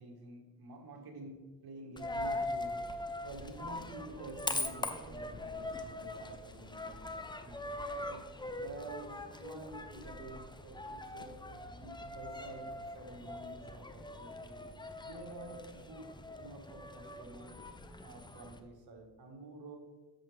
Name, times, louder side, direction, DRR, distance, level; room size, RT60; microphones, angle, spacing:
voice 1, 0.0-7.1 7.4-14.6 15.0-16.1 16.4-17.6 18.0-19.8, right 3 dB, 65° right, 2 dB, 1.7 m, -49 dB
Coin (dropping), 2.0-18.6, left 2 dB, 10° left, 0.6 m, -42 dB
8.6 x 7.2 x 3.4 m, 1.3 s
cardioid pair, 70°, 41 cm